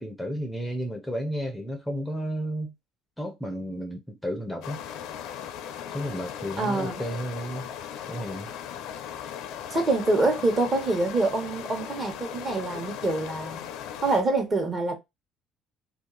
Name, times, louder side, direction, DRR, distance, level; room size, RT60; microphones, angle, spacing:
voice 1, 0.0-2.7 3.2-4.8 5.9-7.7 8.1-8.5, equal, ahead, 0.6 m, -32 dB
sound 1, 4.6-14.2, left 9 dB, 75° left, 0.5 m, -38 dB
voice 2, 6.6-6.9 9.7-13.6 14.0-15.0, right 2 dB, 30° right, 1.2 m, -25 dB
2.7 x 2.4 x 3.8 m
cardioid pair, 115°, 0 cm